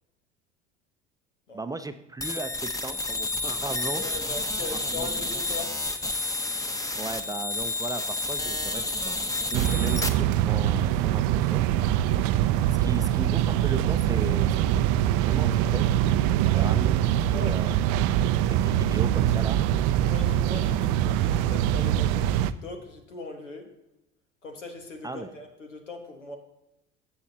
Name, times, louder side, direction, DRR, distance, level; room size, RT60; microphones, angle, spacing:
voice 1, 1.5-4.0 4.7-5.1 7.0-9.2 9.5-11.7 12.8-14.7 15.2-16.0 16.3-16.9 17.3-18.0 18.5-19.6 25.0-25.3, right 3 dB, 10° right, 9 dB, 0.6 m, -36 dB
sound 1, 2.2-10.1, left 2 dB, 10° left, 0.9 m, -30 dB
voice 2, 3.9-5.7 6.6-6.7 16.5-16.7 17.3-17.6 20.0-23.7 24.4-26.4, left 3 dB, 85° left, 4 dB, 1.5 m, -40 dB
sound 2, 9.5-22.5, right 12 dB, 50° right, 0.5 m, -23 dB
16.0 x 6.5 x 2.8 m, 0.88 s
figure-of-eight pair, 65°, 36 cm